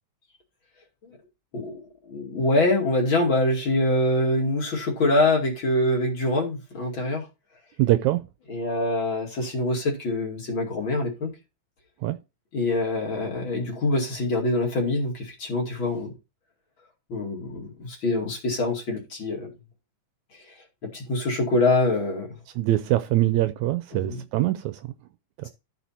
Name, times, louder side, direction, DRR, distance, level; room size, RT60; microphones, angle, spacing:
voice 1, 1.5-7.3 8.5-11.3 12.5-16.1 17.1-19.5 20.3-20.4 20.8-22.3 23.9-24.2, left 2 dB, 40° left, 2.9 m, -25 dB
voice 2, 7.8-8.2 12.0-12.2 22.6-24.8 25.4-25.5, right 15 dB, 80° right, 1.8 m, -23 dB
13.5 x 4.6 x 4.3 m
omnidirectional pair, 3.6 m